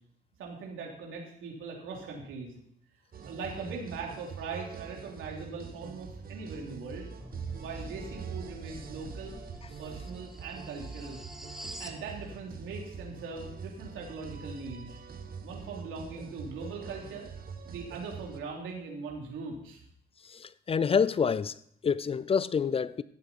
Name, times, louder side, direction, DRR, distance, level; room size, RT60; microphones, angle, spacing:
voice 1, 0.4-2.5 3.2-7.1 7.6-9.3 9.8-11.2 11.8-15.0 15.4-17.3 17.6-19.8, right 4 dB, 85° right, 3.1 m, -40 dB
sound 1, 3.1-18.4, right 6 dB, 45° right, 1.2 m, -44 dB
sound 2, 7.2-12.0, equal, ahead, 1.2 m, -46 dB
voice 2, 20.3-23.0, left 6 dB, 30° left, 0.5 m, -28 dB
14.5 x 8.1 x 4.3 m
cardioid pair, 90°, 20 cm